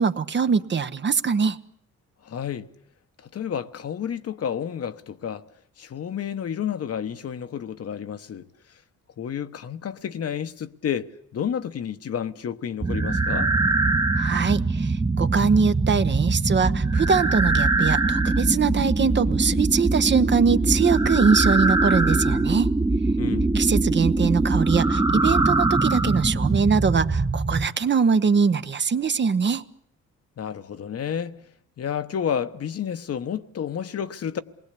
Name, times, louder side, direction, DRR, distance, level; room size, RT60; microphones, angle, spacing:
voice 1, 0.0-1.6 14.2-22.7 23.5-29.6, right 5 dB, 35° right, 1.0 m, -22 dB
voice 2, 2.2-2.7 3.2-5.4 5.8-8.5 9.2-13.5 23.2-23.5 30.4-31.4 31.8-34.4, left 8 dB, 50° left, 1.2 m, -30 dB
sound 1, 12.8-27.7, right 3 dB, 15° right, 1.1 m, -22 dB
27.0 x 20.5 x 8.4 m
cardioid pair, 90°, 30 cm